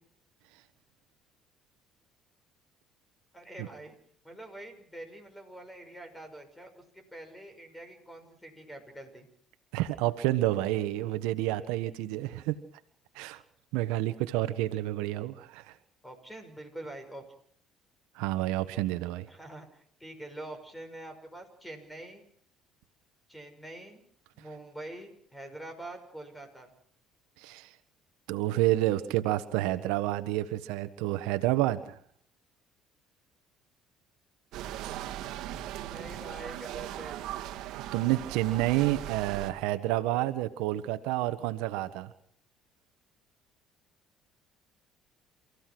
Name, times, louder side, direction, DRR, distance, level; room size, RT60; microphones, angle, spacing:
voice 1, 3.3-4.0 4.2-9.3 16.0-17.2 19.3-22.2 23.3-24.0 24.3-26.7 35.9-37.2, right 1 dB, 5° left, 7 dB, 6.1 m, -45 dB
voice 2, 9.7-12.6 13.1-13.4 13.7-15.7 18.1-19.3 27.4-27.7 28.3-32.0 37.9-42.1, right 16 dB, 90° right, 11 dB, 1.4 m, -29 dB
sound 1, 34.5-39.5, right 13 dB, 70° right, 1.9 m, -39 dB
29.0 x 15.0 x 6.2 m, 0.63 s
cardioid pair, 105°, 0 cm